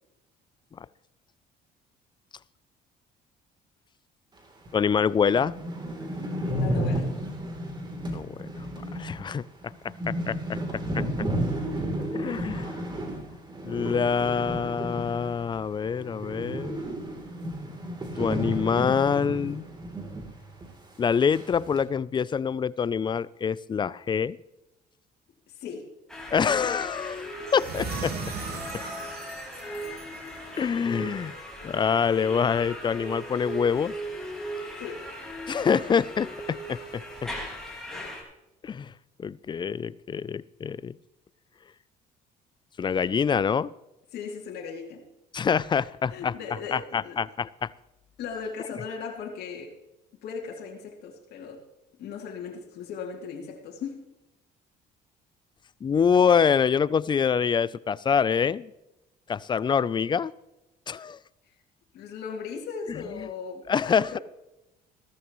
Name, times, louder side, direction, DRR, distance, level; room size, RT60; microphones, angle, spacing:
voice 1, 4.7-5.5 8.1-8.7 8.9-9.4 10.1-10.6 10.9-11.0 12.0-12.7 13.6-16.9 18.2-19.7 21.0-24.4 26.3-27.2 27.5-28.1 30.6-31.4 31.6-33.9 35.5-37.3 38.6-38.9 39.2-41.0 42.8-43.7 45.3-46.3 46.7-47.7 55.8-58.7 59.3-60.3 60.9-61.2 62.9-63.3 63.7-64.2, left 6 dB, 25° left, 20 dB, 0.4 m, -25 dB
sound 1, 4.7-4.8 5.1-5.2 5.3-15.6 15.8-20.3 20.6-20.7 21.3-21.8, right 1 dB, 25° right, 3.2 m, -32 dB
voice 2, 6.4-7.1 25.6-25.9 34.8-35.0 44.1-45.0 45.8-47.2 48.2-49.7 50.2-51.6 52.0-54.0 61.9-64.2, left 5 dB, 70° left, -1 dB, 2.8 m, -38 dB
sound 2, 26.1-38.2, equal, 5° left, 4.7 m, -38 dB
sound 3, 27.5-30.8, right 5 dB, 70° right, 2.1 m, -38 dB
16.0 x 14.0 x 3.1 m, 0.95 s
cardioid pair, 110°, 17 cm